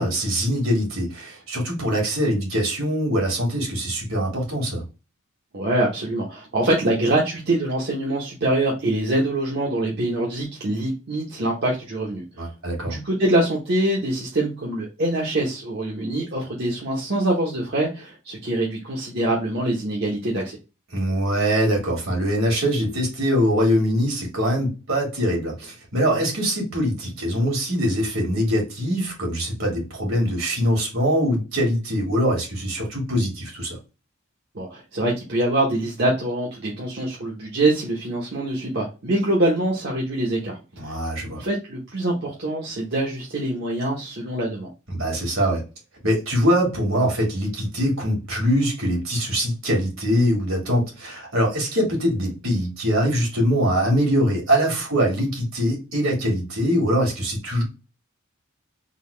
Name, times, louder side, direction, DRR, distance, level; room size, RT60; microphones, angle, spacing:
voice 1, 0.0-4.8 12.4-13.0 20.9-33.8 40.8-41.4 44.9-45.6 46.0-57.6, equal, 75° right, 0 dB, 2.0 m, -23 dB
voice 2, 5.5-12.2 12.9-20.6 34.5-40.6 40.8-40.9 41.3-44.7, right 1 dB, 50° right, -3 dB, 0.9 m, -24 dB
3.9 x 2.3 x 3.2 m, 0.29 s
head